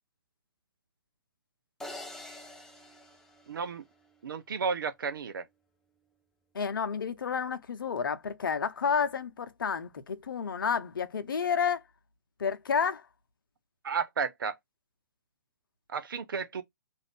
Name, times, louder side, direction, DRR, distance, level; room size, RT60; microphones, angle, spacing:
sound 1, 1.8-4.1, left 1 dB, 5° left, 0.4 m, -46 dB
voice 1, 3.5-3.8 4.2-5.4 13.8-14.5 15.9-16.6, right 5 dB, 70° right, 0.5 m, -32 dB
voice 2, 6.5-11.8 12.4-13.0, left 6 dB, 70° left, 0.6 m, -30 dB
2.5 x 2.5 x 3.4 m
hypercardioid pair, 135°, 12 cm